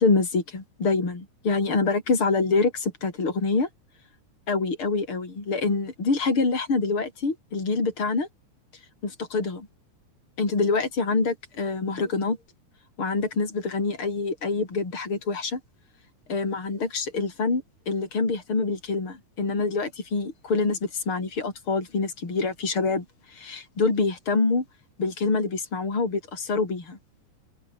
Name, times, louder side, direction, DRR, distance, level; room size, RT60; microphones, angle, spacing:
voice 1, 0.0-3.7 4.5-8.3 9.0-9.7 10.4-12.4 13.0-15.6 16.3-23.0 23.3-24.6 25.0-27.0, left 3 dB, 40° left, 6.6 m, -26 dB
open air
omnidirectional pair, 3.8 m